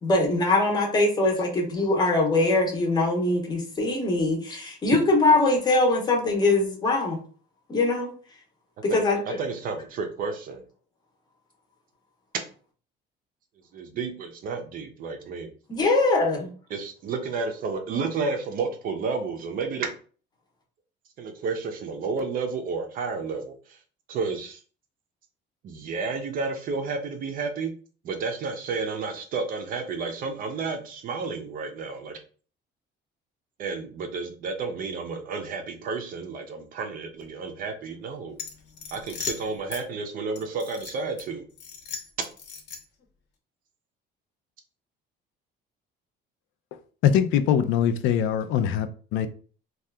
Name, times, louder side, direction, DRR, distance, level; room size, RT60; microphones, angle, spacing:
voice 1, 0.0-7.2 7.7-8.1 8.8-9.4 15.7-16.5, left 2 dB, 20° left, 1 dB, 0.7 m, -22 dB
voice 2, 9.4-10.6 13.7-15.5 16.7-19.9 21.2-23.8 24.1-24.6 25.6-27.7 28.0-32.2 33.6-38.4 38.9-41.4, right 4 dB, 45° right, 5 dB, 0.5 m, -31 dB
sound 1, 38.3-39.8 40.4-41.2 41.6-43.0, left 6 dB, 60° left, 0.8 m, -38 dB
voice 3, 47.0-49.3, left 9 dB, 80° left, 9 dB, 0.4 m, -22 dB
2.7 x 2.3 x 3.3 m, 0.40 s
cardioid pair, 175°, 20 cm